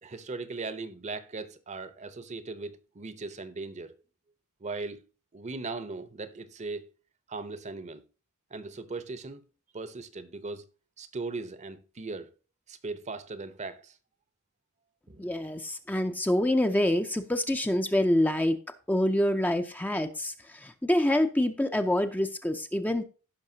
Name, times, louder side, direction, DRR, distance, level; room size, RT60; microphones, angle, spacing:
voice 1, 0.0-4.0 4.6-5.0 5.3-6.9 7.3-8.0 8.5-9.4 9.7-10.6 11.0-12.3 12.7-13.9 15.1-15.3, right 3 dB, 35° right, 0.8 m, -38 dB
voice 2, 15.2-18.6 18.9-20.3 20.6-23.0, left 1 dB, 10° left, 0.6 m, -26 dB
16.5 x 5.8 x 2.8 m
head